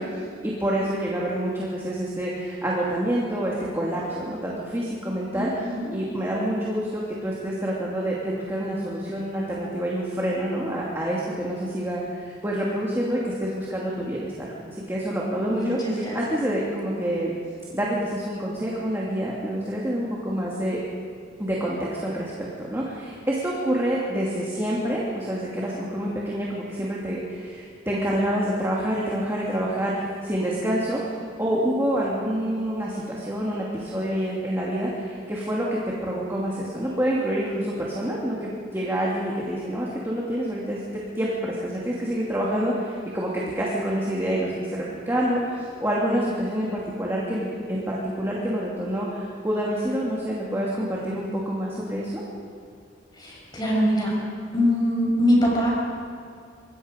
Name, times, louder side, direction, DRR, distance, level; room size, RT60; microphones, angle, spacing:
voice 1, 0.0-5.6 5.9-17.3 17.7-20.8 21.4-31.0 31.4-52.2, right 1 dB, 15° right, -5 dB, 2.6 m, -27 dB
voice 2, 5.3-5.9 15.5-16.2 53.2-54.1 54.5-55.7, equal, 20° left, -3 dB, 6.2 m, -23 dB
26.0 x 20.5 x 5.3 m, 2.4 s
head